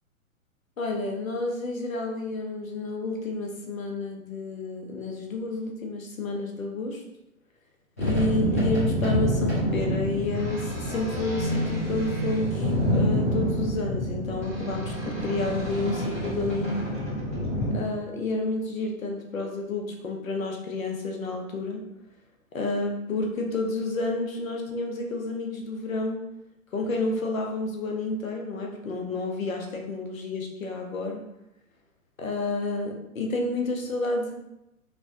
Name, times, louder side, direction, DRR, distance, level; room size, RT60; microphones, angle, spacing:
voice 1, 0.8-7.0 8.0-16.7 17.7-21.8 22.5-26.2 26.7-31.2 32.2-34.3, left 2 dB, 75° left, 1 dB, 0.7 m, -30 dB
sound 1, 8.0-17.7, equal, 15° left, 0.3 m, -27 dB
3.1 x 2.1 x 2.6 m, 0.86 s
figure-of-eight pair, 115°, 42 cm